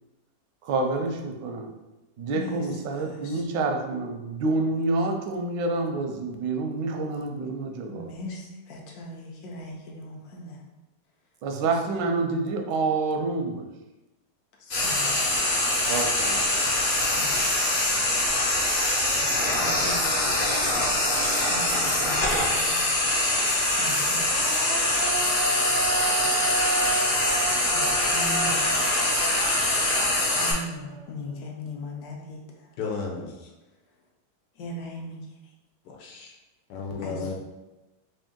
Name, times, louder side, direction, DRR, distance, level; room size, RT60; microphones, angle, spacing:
voice 1, 0.6-1.7 2.2-8.1 11.4-13.6 15.9-16.8, right 3 dB, 85° right, 3 dB, 1.2 m, -28 dB
voice 2, 2.3-2.7 2.9-3.4 7.9-10.6 11.6-11.7 14.6-15.2 17.2-17.7 19.6-20.2 21.5-22.8 23.6-24.2 27.7-28.6 30.4-32.7 34.6-35.3 37.0-37.3, left 1 dB, 70° left, -1 dB, 1.1 m, -39 dB
Frying (food), 14.7-30.5, left 1 dB, 45° left, 0.7 m, -24 dB
Human voice, 18.2-18.3 18.7-22.4 24.0-31.3, right 3 dB, 45° right, 0.5 m, -34 dB
voice 3, 32.8-33.5 35.8-36.3 36.7-37.3, left 4 dB, 90° left, 1 dB, 1.4 m, -33 dB
3.5 x 2.6 x 3.7 m, 1.0 s
omnidirectional pair, 1.8 m